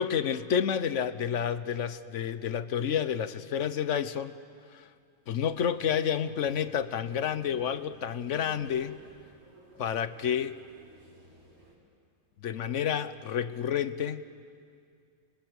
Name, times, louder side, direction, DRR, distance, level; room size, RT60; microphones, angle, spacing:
voice 1, 0.0-4.3 4.7-4.9 5.3-9.0 9.8-10.6 12.4-14.2, left 8 dB, 60° left, 13 dB, 1.2 m, -29 dB
sound 1, 5.3-11.8, right 1 dB, 80° right, 5.7 m, -56 dB
28.0 x 24.0 x 8.2 m, 2.3 s
omnidirectional pair, 1.5 m